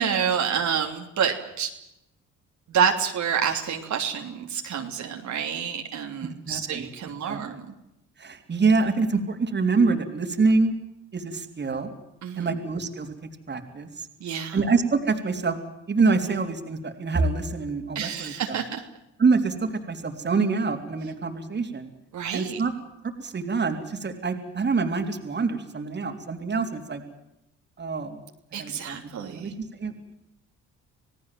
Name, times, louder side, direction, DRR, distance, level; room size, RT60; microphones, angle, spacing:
voice 1, 0.0-1.7 2.7-7.7 12.2-12.5 14.2-14.6 17.9-18.8 22.1-22.6 28.5-29.5, right 7 dB, 70° right, 2 dB, 3.1 m, -28 dB
voice 2, 6.4-6.9 7.2-7.4 8.2-10.7 11.1-11.9 12.4-14.1 14.5-15.6 15.9-18.6 19.2-21.9 22.3-22.7 23.2-27.0 27.8-28.2 28.6-30.1, right 4 dB, 35° right, 5 dB, 3.5 m, -26 dB
27.5 x 18.0 x 7.7 m, 0.86 s
cardioid pair, 90°, 30 cm